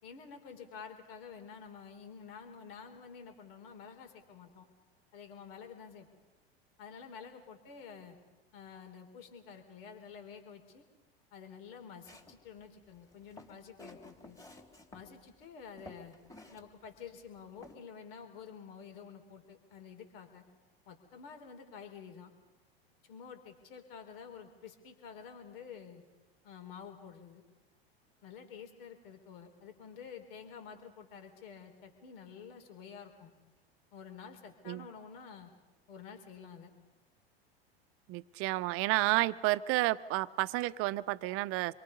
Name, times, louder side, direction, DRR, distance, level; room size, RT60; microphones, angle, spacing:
voice 1, 0.0-4.7 5.1-6.1 6.8-8.2 8.5-10.9 11.3-14.4 14.9-16.2 16.5-20.4 20.9-22.3 23.0-26.0 26.4-27.4 28.2-33.3 33.9-35.5 35.9-36.7 39.1-39.2, left 6 dB, 65° left, 5 dB, 4.4 m, -50 dB
Walk footsteps, 12.0-12.4 13.1-15.1 15.4-15.5 15.8-16.6 16.9-17.0 17.6-17.7, left 2 dB, 10° left, 3.7 m, -52 dB
voice 2, 38.1-41.7, right 18 dB, 45° right, 16 dB, 0.9 m, -31 dB
27.5 x 23.0 x 5.5 m, 1.2 s
hypercardioid pair, 90°, 31 cm